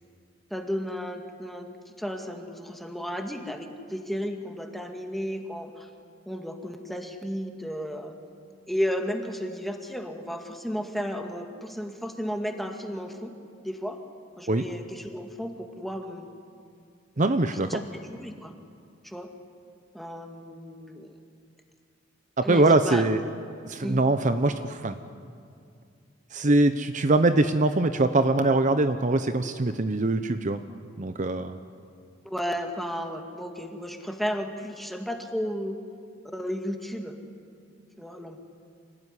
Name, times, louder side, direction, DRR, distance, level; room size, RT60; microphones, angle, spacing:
voice 1, 0.5-1.7 2.0-5.9 6.3-8.2 8.7-13.3 13.6-14.0 14.4-16.3 17.6-18.6 19.0-19.3 19.9-21.1 22.4-23.1 23.8-24.0 31.3-31.4 32.2-35.8 36.3-37.2 38.0-38.4, equal, ahead, 4 dB, 2.0 m, -33 dB
voice 2, 17.2-17.8 22.5-23.2 23.7-25.0 26.3-30.6 31.0-31.6, right 2 dB, 40° right, 9 dB, 0.8 m, -23 dB
26.0 x 18.0 x 9.8 m, 2.3 s
head